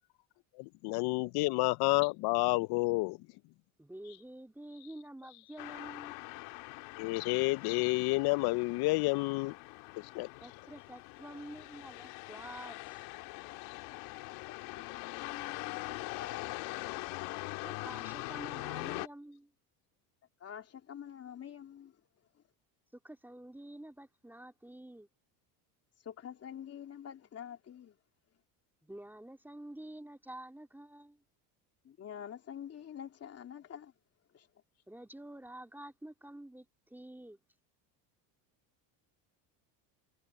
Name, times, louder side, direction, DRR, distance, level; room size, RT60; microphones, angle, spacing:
voice 1, 0.6-3.2 7.0-9.5 10.1-10.3, left 23 dB, 60° left, 0.5 m, -29 dB
voice 2, 3.8-6.2 10.4-13.1 17.6-19.5 23.0-25.1 28.8-31.2 34.9-37.4, right 1 dB, 5° right, 2.6 m, -49 dB
sound 1, 5.6-19.1, left 23 dB, 75° left, 2.2 m, -43 dB
voice 3, 14.3-17.4 20.4-22.4 26.0-28.0 31.8-33.9 34.3-34.6, left 9 dB, 35° left, 3.0 m, -48 dB
cardioid pair, 135°, 45 cm